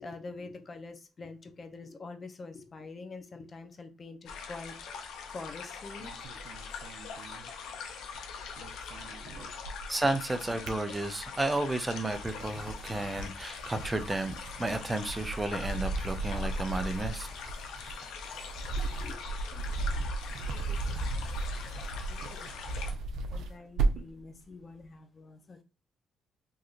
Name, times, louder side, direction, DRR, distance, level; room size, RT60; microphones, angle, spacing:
voice 1, 0.0-6.1 9.0-9.5 18.7-22.9 23.3-25.6, left 3 dB, 40° left, 0.7 m, -47 dB
sound 1, 4.3-22.9, left 6 dB, 85° left, 0.6 m, -43 dB
sound 2, 6.0-8.2 8.4-10.0 10.4-11.5 12.0-24.2, right 3 dB, 80° right, 0.6 m, -36 dB
voice 2, 9.9-17.3, right 2 dB, 15° right, 0.6 m, -32 dB
3.7 x 2.8 x 2.5 m
cardioid pair, 90°, 0 cm